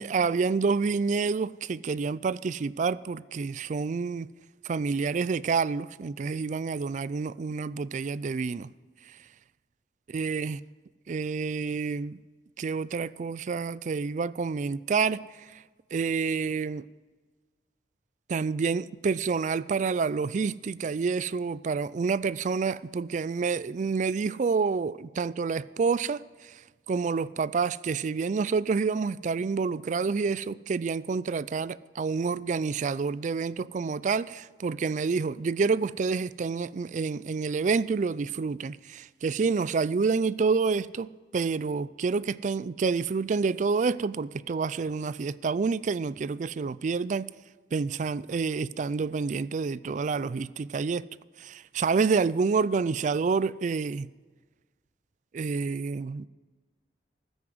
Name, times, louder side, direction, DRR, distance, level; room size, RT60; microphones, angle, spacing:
voice 1, 0.0-4.3 4.6-8.7 10.1-10.6 11.1-12.2 12.6-15.6 15.9-16.9 18.3-26.6 26.9-47.3 47.7-51.1 51.4-54.1 55.3-56.3, right 5 dB, 45° right, 0.3 m, -28 dB
14.5 x 9.6 x 7.8 m
head